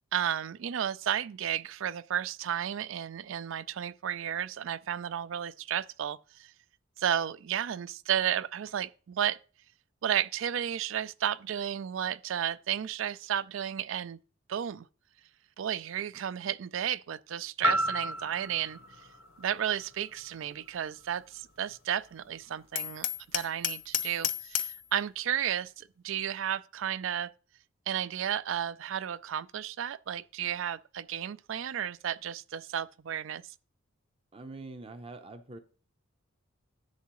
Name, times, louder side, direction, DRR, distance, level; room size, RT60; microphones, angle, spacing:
voice 1, 0.1-6.5 7.0-9.4 10.0-14.2 14.5-14.9 15.6-18.8 19.4-27.3 27.9-33.4, right 9 dB, 70° right, 0.4 m, -33 dB
sound 1, 17.6-21.7 22.2-22.3, equal, 70° left, 0.8 m, -34 dB
Hammer, 22.8-24.8, left 10 dB, 40° left, 0.4 m, -32 dB
voice 2, 34.3-35.6, right 2 dB, 30° right, 0.6 m, -44 dB
10.5 x 7.4 x 3.0 m
head